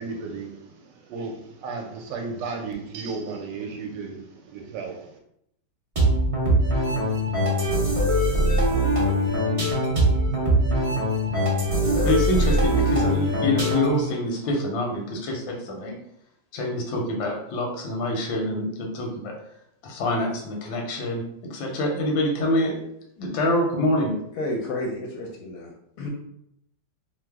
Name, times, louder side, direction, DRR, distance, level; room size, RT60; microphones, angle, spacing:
voice 1, 0.0-5.2, right 4 dB, 75° right, 3 dB, 1.2 m, -34 dB
sound 1, 6.0-14.1, equal, 40° right, 0.4 m, -22 dB
voice 2, 11.9-16.0 16.5-19.3 19.8-22.8 23.2-24.1, left 1 dB, 90° left, 1 dB, 1.4 m, -26 dB
voice 3, 24.4-25.7 26.0-26.1, left 1 dB, 70° left, 0 dB, 0.8 m, -31 dB
3.1 x 2.0 x 3.4 m, 0.75 s
omnidirectional pair, 2.0 m